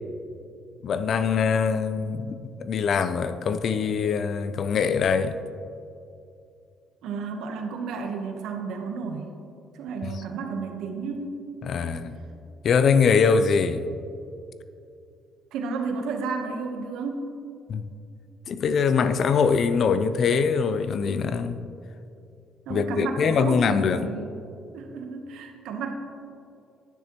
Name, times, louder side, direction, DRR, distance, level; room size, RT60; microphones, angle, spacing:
voice 1, 0.8-5.4 11.6-12.1 12.6-13.8 17.7-17.8 18.5-21.6 22.7-24.0, left 5 dB, 55° left, 0.4 m, -23 dB
voice 2, 7.0-9.3 9.7-11.4 15.5-17.3 22.7-24.3 24.7-25.9, right 4 dB, 80° right, 1.1 m, -32 dB
10.5 x 9.2 x 3.0 m
cardioid pair, 100°, 0 cm